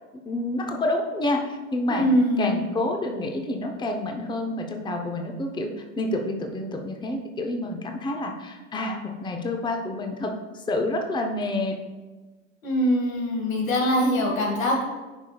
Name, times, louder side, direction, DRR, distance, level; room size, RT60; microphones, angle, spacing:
voice 1, 0.3-2.1 2.4-5.7 6.0-10.3 10.7-11.8, left 2 dB, 10° left, 3 dB, 0.7 m, -28 dB
voice 2, 1.9-2.6 12.6-14.8, equal, 85° left, 0 dB, 2.0 m, -23 dB
9.7 x 5.0 x 2.3 m, 1.2 s
hypercardioid pair, 100°, 39 cm